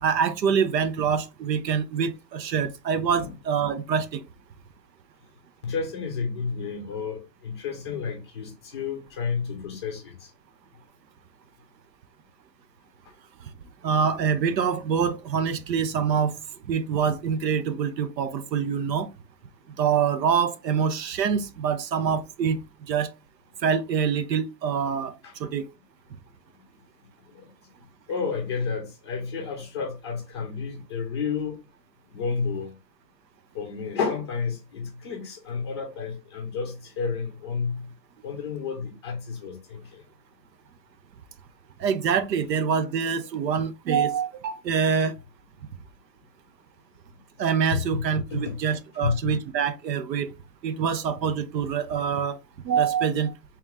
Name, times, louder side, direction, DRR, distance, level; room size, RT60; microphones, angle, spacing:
voice 1, 0.0-4.2 13.8-16.3 16.7-19.1 19.8-22.6 22.9-23.1 23.6-25.1 25.4-25.6 41.8-45.1 47.4-50.3 50.6-52.4 52.6-53.3, right 7 dB, 85° right, 0.8 m, -25 dB
voice 2, 5.6-10.3 25.2-25.3 27.3-27.5 28.1-31.6 32.1-32.7 33.5-37.8 38.2-40.0 47.7-48.0 48.3-48.6 49.0-49.4, left 5 dB, 20° left, 0.5 m, -31 dB
3.5 x 3.0 x 3.3 m
hypercardioid pair, 165°, 49 cm